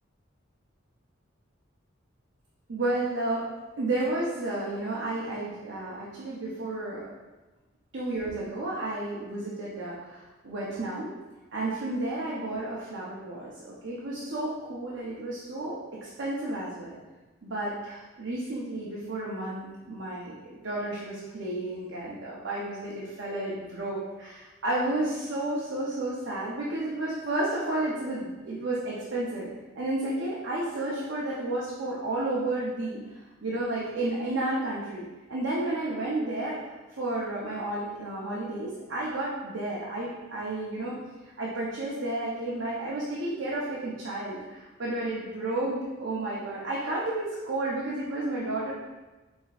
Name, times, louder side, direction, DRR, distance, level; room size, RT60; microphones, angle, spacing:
voice 1, 2.7-3.4 3.8-7.1 7.9-11.1 11.5-17.0 17.4-29.5 29.8-33.0 33.4-36.6 37.0-41.0 41.4-48.7, right 2 dB, 65° right, -6 dB, 0.7 m, -32 dB
5.1 x 3.5 x 2.4 m, 1.2 s
head